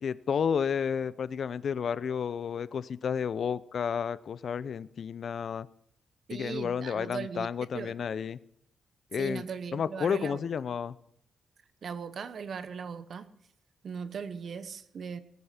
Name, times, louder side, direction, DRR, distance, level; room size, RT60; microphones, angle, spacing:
voice 1, 0.0-5.7 6.3-8.4 9.1-9.4 9.7-11.0, left 7 dB, 55° left, 17 dB, 0.5 m, -31 dB
voice 2, 6.3-7.5 7.7-7.9 9.2-10.4 11.8-13.3 13.8-15.2, right 6 dB, 55° right, 13 dB, 0.9 m, -38 dB
19.0 x 8.4 x 5.7 m, 0.74 s
cardioid pair, 120°, 0 cm